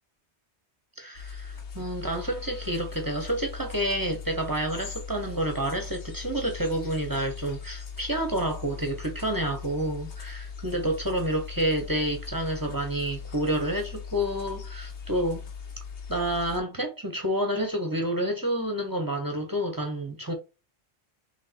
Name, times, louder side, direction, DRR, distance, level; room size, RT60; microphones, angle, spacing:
voice 1, 1.0-15.5 16.1-20.3, right 1 dB, 20° right, 0.8 m, -29 dB
sound 1, 1.1-16.6, left 6 dB, 80° left, 1.2 m, -40 dB
3.3 x 3.2 x 4.1 m
omnidirectional pair, 1.1 m